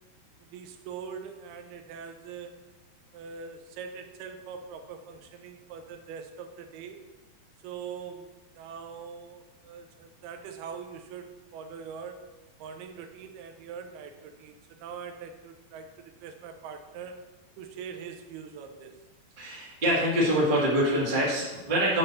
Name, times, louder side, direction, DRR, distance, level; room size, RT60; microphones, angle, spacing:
voice 1, 0.4-2.6 3.1-7.0 7.6-12.3 12.6-17.2 17.6-19.0, right 6 dB, 85° right, 7 dB, 2.7 m, -42 dB
voice 2, 19.4-22.0, equal, 20° right, -5 dB, 1.4 m, -25 dB
9.1 x 5.6 x 4.2 m, 1.1 s
omnidirectional pair, 4.4 m